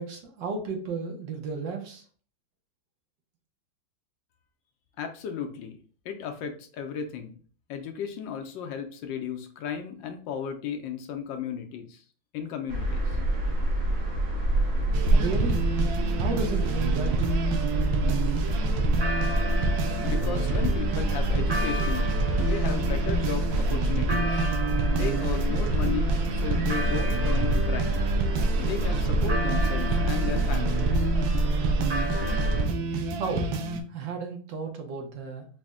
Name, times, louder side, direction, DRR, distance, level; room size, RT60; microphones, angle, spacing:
voice 1, 0.0-2.0 15.1-15.7 16.2-17.3 33.1-33.5 33.9-35.5, right 4 dB, 70° right, 2 dB, 1.4 m, -33 dB
voice 2, 5.0-5.8 6.0-7.4 7.7-12.0 12.3-13.2 20.0-22.1 22.4-24.4 24.9-28.0 28.6-31.1, left 7 dB, 75° left, 5 dB, 1.2 m, -35 dB
sound 1, 12.7-32.6, right 1 dB, 55° right, 1.0 m, -26 dB
sound 2, 14.9-33.8, right 4 dB, 90° right, 1.4 m, -30 dB
4.1 x 2.1 x 3.5 m, 0.43 s
omnidirectional pair, 2.1 m